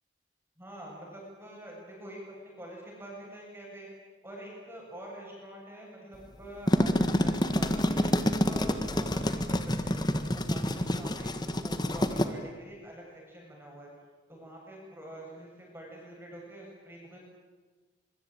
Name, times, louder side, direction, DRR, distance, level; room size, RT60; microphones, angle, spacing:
voice 1, 0.6-3.9 4.2-8.1 8.4-13.9 14.3-17.2, right 1 dB, 10° right, -2 dB, 7.9 m, -46 dB
sound 1, 6.5-12.3, left 1 dB, 20° left, 1.5 m, -27 dB
25.0 x 23.5 x 8.9 m, 1.3 s
head